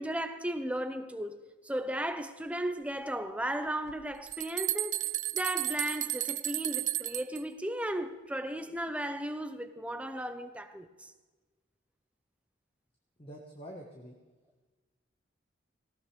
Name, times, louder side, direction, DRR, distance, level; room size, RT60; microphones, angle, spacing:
voice 1, 0.0-1.4 1.6-5.0 5.3-11.1, right 1 dB, 5° right, 0.8 m, -35 dB
sound 1, 3.9-7.4, right 14 dB, 40° right, 0.4 m, -33 dB
voice 2, 13.2-14.2, equal, 30° left, 1.4 m, -46 dB
18.5 x 17.5 x 3.4 m
head